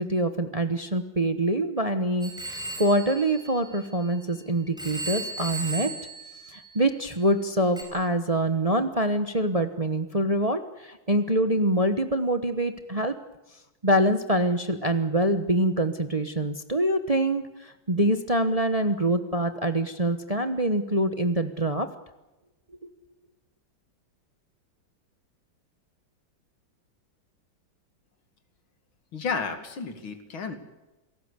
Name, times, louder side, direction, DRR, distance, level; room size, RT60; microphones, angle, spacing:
voice 1, 0.0-5.9 6.5-13.1 13.8-21.9, right 1 dB, 25° right, 8 dB, 1.0 m, -25 dB
Telephone, 2.2-4.3 4.8-7.1 7.8-7.9, right 2 dB, ahead, 5.3 m, -36 dB
voice 2, 29.1-30.6, left 5 dB, 85° left, 8 dB, 2.9 m, -32 dB
27.5 x 18.0 x 8.2 m, 1.0 s
omnidirectional pair, 2.2 m